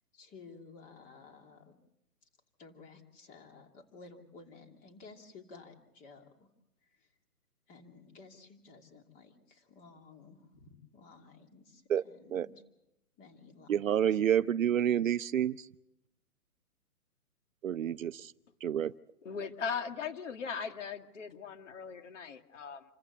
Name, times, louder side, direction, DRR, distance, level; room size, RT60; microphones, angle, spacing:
voice 1, 0.1-1.7 2.6-6.5 6.8-7.1 7.7-12.5 13.2-14.2 17.9-18.0, left 4 dB, 20° left, 4 dB, 2.7 m, -54 dB
voice 2, 13.7-15.6 17.6-18.3 18.6-18.9, right 9 dB, 60° right, 16 dB, 0.7 m, -28 dB
voice 3, 19.2-22.8, left 6 dB, 50° left, 6 dB, 2.3 m, -39 dB
28.5 x 14.5 x 8.2 m, 0.88 s
hypercardioid pair, 150°, 45 cm